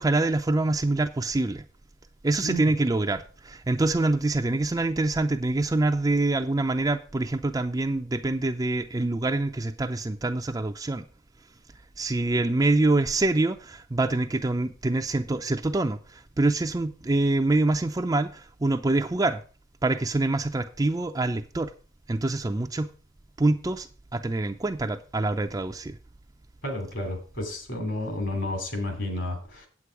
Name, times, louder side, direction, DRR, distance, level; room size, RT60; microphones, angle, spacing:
voice 1, 0.0-1.6 2.2-11.0 12.0-19.4 19.8-21.7 22.1-22.9 23.4-23.9 24.1-25.9, right 2 dB, 20° right, 0.4 m, -25 dB
voice 2, 2.4-2.7 26.6-29.7, left 1 dB, 65° left, 3.2 m, -31 dB
8.4 x 8.4 x 4.7 m
head